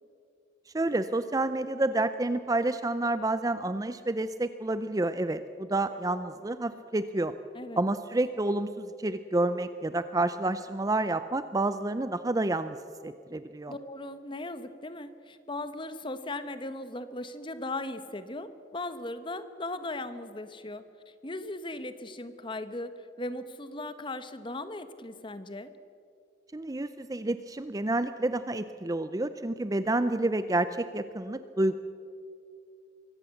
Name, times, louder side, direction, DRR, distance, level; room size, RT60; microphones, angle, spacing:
voice 1, 0.7-7.3 7.8-12.8 13.0-13.7 26.5-31.8, right 2 dB, 20° right, 12 dB, 0.5 m, -29 dB
voice 2, 13.7-25.7, left 2 dB, 25° left, 11 dB, 1.0 m, -38 dB
23.5 x 16.5 x 7.1 m, 2.5 s
head